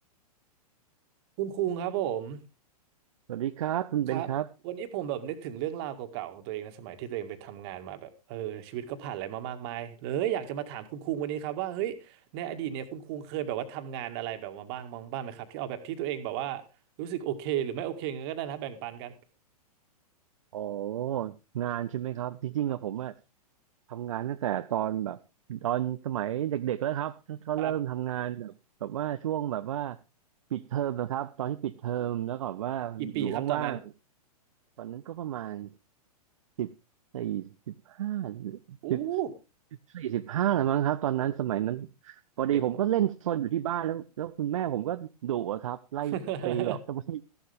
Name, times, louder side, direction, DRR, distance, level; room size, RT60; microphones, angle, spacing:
voice 1, 1.4-2.4 4.1-4.3 4.6-16.6 17.0-19.1 27.6-27.7 33.0-33.8 38.8-39.3 41.2-41.3 42.7-42.8 46.1-46.8, right 11 dB, 40° right, 7 dB, 1.9 m, -34 dB
voice 2, 3.3-4.5 20.5-23.1 23.9-25.2 25.5-28.5 28.8-30.0 30.5-33.8 34.8-35.7 36.6-36.7 37.1-39.0 39.9-46.2 46.4-47.2, right 11 dB, 55° right, 11 dB, 0.7 m, -31 dB
14.5 x 11.5 x 3.5 m, 0.29 s
figure-of-eight pair, 105°, 20 cm